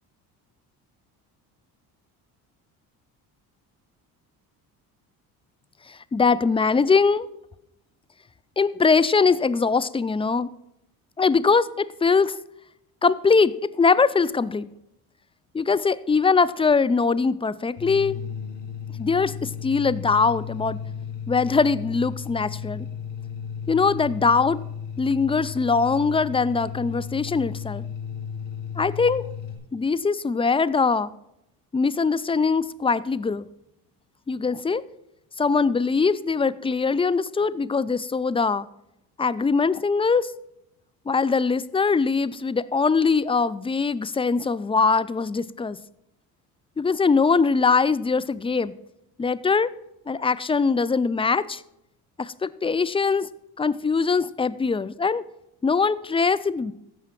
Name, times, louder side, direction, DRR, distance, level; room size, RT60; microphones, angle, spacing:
voice 1, 5.9-7.3 8.6-10.5 11.2-12.4 13.0-14.7 15.5-18.2 19.0-20.8 21.3-22.9 23.7-24.6 25.0-27.9 28.8-29.3 29.7-31.1 31.7-33.4 34.3-34.8 35.4-38.7 39.2-40.3 41.1-45.8 46.8-48.7 49.2-49.7 50.1-51.6 52.2-53.3 53.6-55.2 55.6-56.7, left 4 dB, 15° left, 16 dB, 0.4 m, -22 dB
sound 1, 17.8-29.5, left 7 dB, 80° left, 2.2 m, -34 dB
14.5 x 5.7 x 5.9 m, 0.84 s
hypercardioid pair, 65°, 44 cm